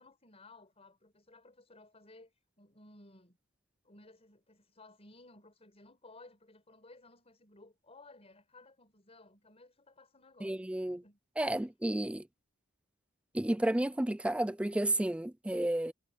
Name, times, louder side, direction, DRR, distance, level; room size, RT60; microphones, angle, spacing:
voice 1, 0.0-3.4 3.8-11.7, left 2 dB, 30° left, 4.8 m, -58 dB
voice 2, 10.4-11.0 11.4-12.2 13.3-15.9, right 1 dB, 5° right, 0.3 m, -31 dB
head